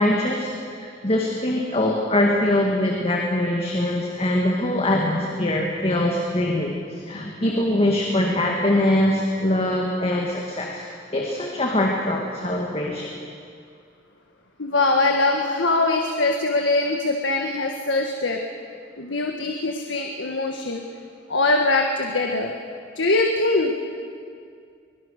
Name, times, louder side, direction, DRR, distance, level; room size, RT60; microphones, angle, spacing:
voice 1, 0.0-10.8 11.1-13.1, left 1 dB, 35° left, 0 dB, 2.1 m, -23 dB
voice 2, 14.6-18.4 19.0-20.8 21.3-22.5 22.9-23.7, left 2 dB, 85° left, 2 dB, 1.6 m, -22 dB
24.0 x 22.0 x 6.7 m, 2.3 s
head